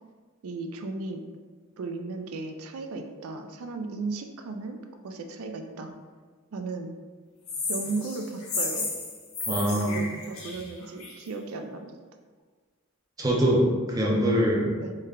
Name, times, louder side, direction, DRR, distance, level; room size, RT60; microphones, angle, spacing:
voice 1, 0.4-1.2 1.8-4.8 5.0-5.9 6.5-6.9 7.7-8.9 9.5-11.9 14.8-14.9, right 3 dB, 85° right, 5 dB, 0.4 m, -35 dB
sound 1, 7.5-11.3, left 3 dB, 75° left, 0.7 m, -33 dB
voice 2, 9.5-10.0 13.2-14.7, equal, 15° right, -3 dB, 0.4 m, -23 dB
3.3 x 2.1 x 3.5 m, 1.5 s
head